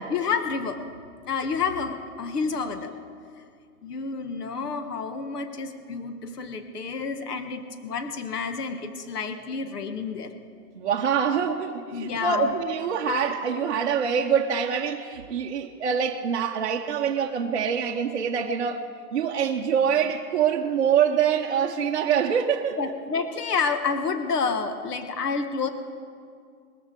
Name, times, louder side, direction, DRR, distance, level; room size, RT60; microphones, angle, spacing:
voice 1, 0.1-0.8 1.3-2.9 3.8-10.3 11.9-12.5 22.8-25.7, left 5 dB, 80° left, 8 dB, 1.3 m, -29 dB
voice 2, 10.8-22.9, right 7 dB, 45° right, 0 dB, 0.8 m, -25 dB
20.5 x 14.5 x 3.7 m, 2.2 s
hypercardioid pair, 175°, 47 cm